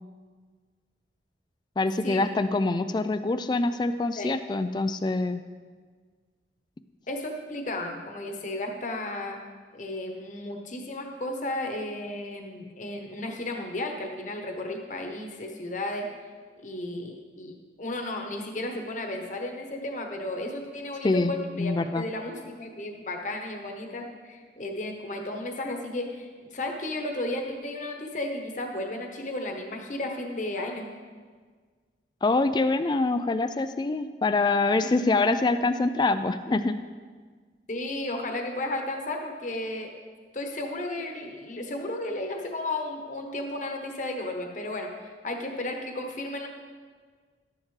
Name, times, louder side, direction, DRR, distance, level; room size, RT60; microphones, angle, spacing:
voice 1, 1.8-5.4 21.0-22.0 32.2-36.8, left 3 dB, 25° left, 11 dB, 0.3 m, -25 dB
voice 2, 7.1-9.4 9.7-16.1 16.6-30.9 37.7-39.9 40.3-46.5, left 1 dB, 45° left, 3 dB, 1.1 m, -34 dB
12.0 x 10.5 x 3.3 m, 1.5 s
head